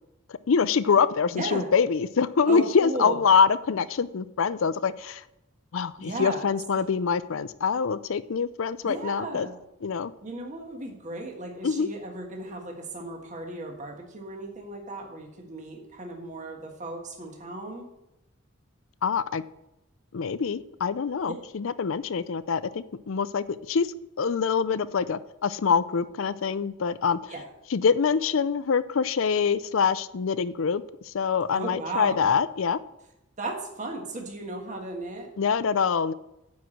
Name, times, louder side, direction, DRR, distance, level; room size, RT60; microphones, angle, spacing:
voice 1, 0.3-5.2 5.7-9.5 9.8-10.1 11.6-11.9 19.0-19.4 20.1-23.9 24.2-27.3 27.7-32.8 35.4-36.1, left 6 dB, 65° left, 16 dB, 0.4 m, -25 dB
voice 2, 1.3-1.7 2.5-3.2 6.0-6.5 8.8-9.5 10.2-17.9 27.3-27.5 31.5-32.3 33.4-35.3, right 2 dB, 35° right, 1 dB, 1.6 m, -35 dB
9.3 x 4.8 x 7.6 m, 0.88 s
head